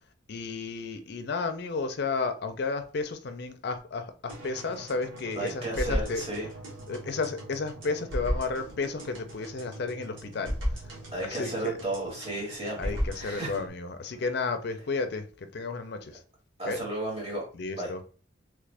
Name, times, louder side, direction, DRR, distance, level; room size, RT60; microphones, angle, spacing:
voice 1, 0.3-6.3 6.9-10.8 11.2-11.8 12.8-16.2 16.7-16.8 17.5-18.1, left 4 dB, 55° left, 0.5 m, -32 dB
sound 1, 4.3-13.7, equal, 85° right, 1.2 m, -36 dB
voice 2, 5.3-6.5 11.1-13.6 14.2-14.3 16.6-17.4 17.8-17.9, right 1 dB, 30° right, 1.6 m, -34 dB
3.3 x 2.5 x 3.3 m
head